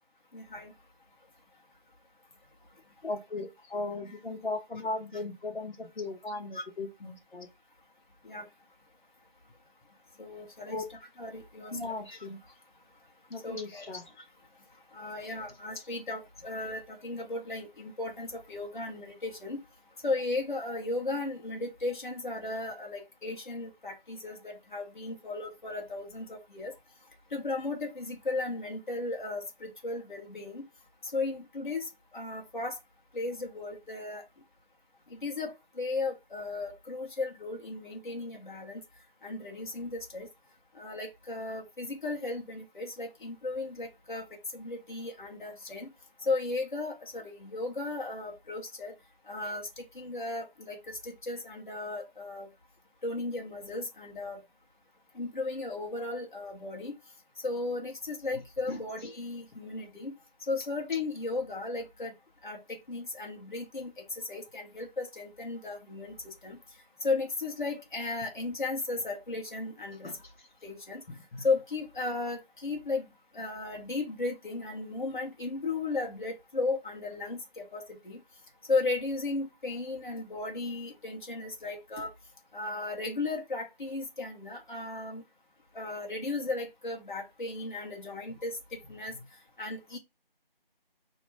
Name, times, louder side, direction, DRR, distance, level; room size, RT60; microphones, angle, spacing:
voice 1, 0.3-0.7 5.1-5.2 6.5-6.6 8.2-8.4 10.2-12.3 13.4-14.0 14.9-19.6 20.0-26.7 27.3-30.7 31.1-32.8 33.1-34.2 35.1-38.8 39.2-40.3 40.7-44.2 44.5-45.9 46.2-48.9 49.3-52.5 53.0-54.4 55.1-56.9 57.4-60.1 60.5-62.1 62.4-66.6 67.0-70.1 70.6-71.0 71.4-73.0 73.3-78.2 78.7-82.1 82.5-85.2 85.7-89.1 89.6-90.0, left 3 dB, 55° left, 0.8 m, -35 dB
voice 2, 3.0-7.5 10.7-10.8 11.7-12.4 13.3-14.1 58.7-58.8 70.0-70.1 71.1-71.4, left 2 dB, 85° left, 0.8 m, -37 dB
2.2 x 2.1 x 3.1 m
figure-of-eight pair, 180°, 29 cm